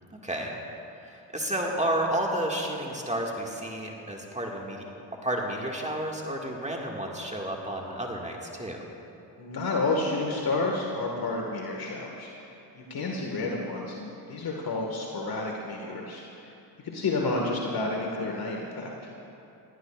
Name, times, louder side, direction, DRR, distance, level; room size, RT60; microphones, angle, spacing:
voice 1, 1.0-4.8 5.2-8.8, right 1 dB, 15° right, -1 dB, 1.9 m, -31 dB
voice 2, 9.4-12.5 12.8-16.5 16.8-18.9, left 3 dB, 45° left, 0 dB, 1.8 m, -30 dB
20.0 x 16.5 x 2.4 m, 2.8 s
hypercardioid pair, 50°, 49 cm